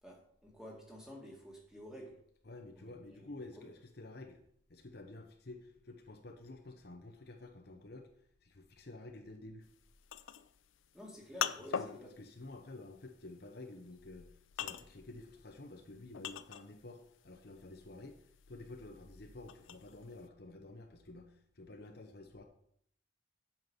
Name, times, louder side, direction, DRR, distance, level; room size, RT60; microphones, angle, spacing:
voice 1, 0.0-2.2 2.8-2.9 3.2-3.3 3.6-3.7 10.9-12.1, equal, 5° right, -2 dB, 1.9 m, -51 dB
voice 2, 2.4-4.4 4.7-8.1 8.4-9.7 11.8-17.0 17.2-18.2 18.5-22.4, left 2 dB, 50° left, 4 dB, 0.8 m, -50 dB
sound 1, 9.7-17.0 17.3-20.2, left 8 dB, 80° left, 0.4 m, -42 dB
8.0 x 6.0 x 5.6 m, 0.68 s
head